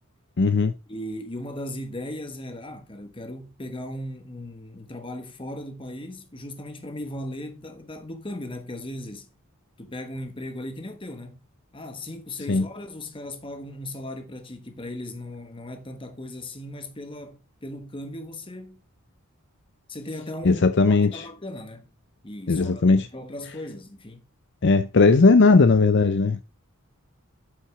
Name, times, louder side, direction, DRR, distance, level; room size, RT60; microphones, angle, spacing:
voice 1, 0.4-0.7 12.5-12.7 20.4-21.3 22.5-23.1 24.6-26.4, left 3 dB, 55° left, 0.5 m, -18 dB
voice 2, 0.9-9.3 9.8-11.4 11.7-18.8 19.9-20.6 20.9-21.9 22.2-24.3, left 1 dB, 25° left, 1.2 m, -37 dB
8.2 x 5.8 x 4.8 m
head